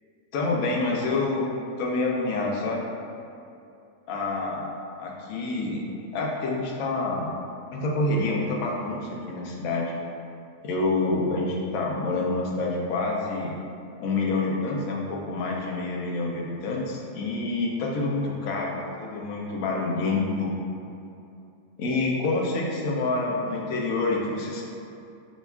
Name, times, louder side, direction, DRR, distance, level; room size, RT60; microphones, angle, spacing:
voice 1, 0.3-1.5 1.8-2.8 4.1-5.8 6.1-7.3 7.7-9.9 10.6-13.6 14.0-20.5 21.8-24.6, left 3 dB, 90° left, -1 dB, 1.0 m, -27 dB
5.1 x 2.3 x 2.3 m, 2.6 s
omnidirectional pair, 1.4 m